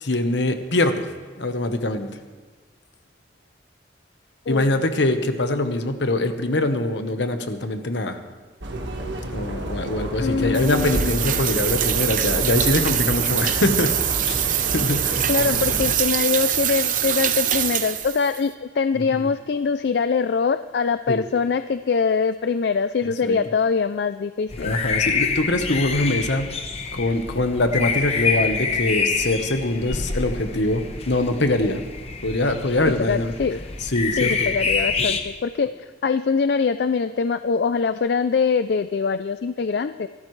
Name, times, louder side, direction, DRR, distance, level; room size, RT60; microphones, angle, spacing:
voice 1, 0.0-1.1 1.4-2.1 4.5-8.2 9.3-14.0 14.2-14.5 14.7-15.6 18.9-19.3 21.1-21.2 23.2-23.4 24.6-26.5 26.9-31.8 32.2-33.3 33.8-34.5 35.0-35.1, left 2 dB, 80° left, 7 dB, 1.2 m, -23 dB
voice 2, 4.5-4.8 10.2-11.3 15.3-24.7 33.0-33.6 34.2-40.1, left 5 dB, 65° left, 12 dB, 0.4 m, -23 dB
sound 1, 8.6-16.0, right 1 dB, 85° right, 1.6 m, -30 dB
sound 2, 10.5-18.4, right 10 dB, 45° right, 0.8 m, -24 dB
sound 3, 24.5-35.2, left 4 dB, 35° left, 1.0 m, -27 dB
25.5 x 12.5 x 3.3 m, 1.4 s
head